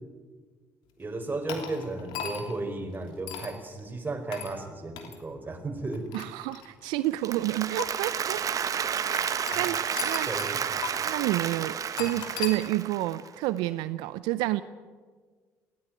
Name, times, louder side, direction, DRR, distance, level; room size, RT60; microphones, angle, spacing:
voice 1, 1.0-6.0 10.3-10.7, right 2 dB, 25° right, 4 dB, 4.8 m, -34 dB
sound 1, 1.5-2.6 3.3-3.6 4.3-4.5 5.0-5.2 5.9-7.0 7.8-7.9 9.2-10.6 10.8-10.9 12.0-12.6, left 8 dB, 75° left, 3.0 m, -37 dB
voice 2, 6.1-8.4 9.6-10.3 11.0-14.6, right 16 dB, 75° right, 14 dB, 0.6 m, -29 dB
Applause, 7.0-13.3, right 7 dB, 50° right, 1.2 m, -31 dB
19.0 x 16.0 x 9.4 m, 1.5 s
hypercardioid pair, 60°, 8 cm